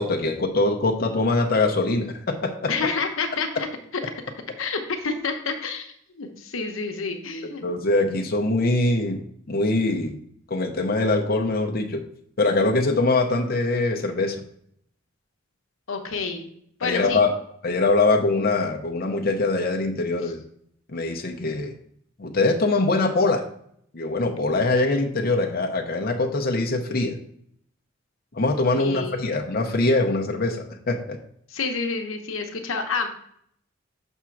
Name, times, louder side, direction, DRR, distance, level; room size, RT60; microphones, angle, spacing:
voice 1, 0.0-2.7 7.6-9.2 9.5-10.2 10.5-12.0 12.4-14.4 16.8-17.3 17.6-20.4 20.9-21.7 22.2-23.4 23.9-27.2 28.3-31.2, left 2 dB, 45° left, 1 dB, 0.7 m, -23 dB
voice 2, 2.7-3.7 4.6-7.6 15.9-16.5 16.8-17.2 20.2-20.3 28.8-29.4 31.5-33.1, left 4 dB, 85° left, 5 dB, 0.9 m, -29 dB
5.9 x 3.6 x 5.8 m, 0.67 s
head